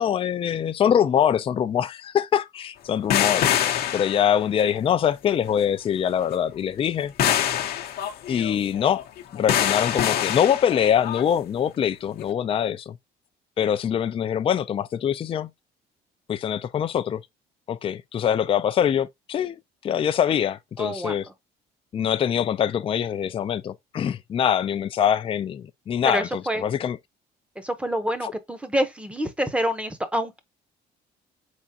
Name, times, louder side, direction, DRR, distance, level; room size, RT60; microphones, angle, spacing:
voice 1, 0.0-3.5 3.9-7.1 8.3-9.0 9.3-13.0 13.6-15.5 16.3-17.2 17.7-19.6 19.8-21.2 21.9-27.0, left 9 dB, 35° left, 0.4 m, -24 dB
sound 1, 3.1-4.6 7.2-11.2 12.2-12.3, left 10 dB, 65° left, 0.7 m, -25 dB
voice 2, 20.8-21.1 26.1-26.6 27.6-30.4, equal, 5° right, 0.8 m, -27 dB
4.2 x 3.6 x 2.8 m
cardioid pair, 110°, 17 cm